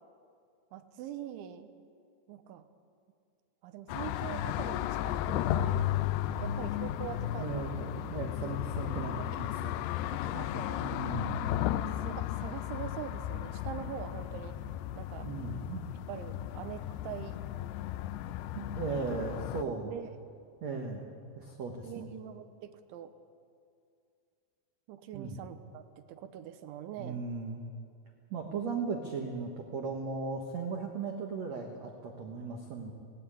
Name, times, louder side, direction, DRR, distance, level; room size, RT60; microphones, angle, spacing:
voice 1, 0.7-1.7 2.3-2.7 3.6-5.9 6.4-7.7 8.8-9.3 10.1-10.9 11.7-14.6 15.0-15.3 16.1-17.4 19.1-19.2 19.6-20.1 21.8-23.1 24.9-27.2, right 10 dB, 85° right, 10 dB, 3.3 m, -44 dB
sound 1, 3.9-19.6, left 12 dB, 85° left, 2.4 m, -34 dB
voice 2, 7.4-10.1 10.8-11.4 15.2-15.8 18.5-19.9 20.6-21.1 21.4-21.9 25.1-25.4 27.0-27.6 28.3-32.9, right 4 dB, 70° right, 2 dB, 1.6 m, -37 dB
18.0 x 17.5 x 9.8 m, 2.4 s
omnidirectional pair, 5.4 m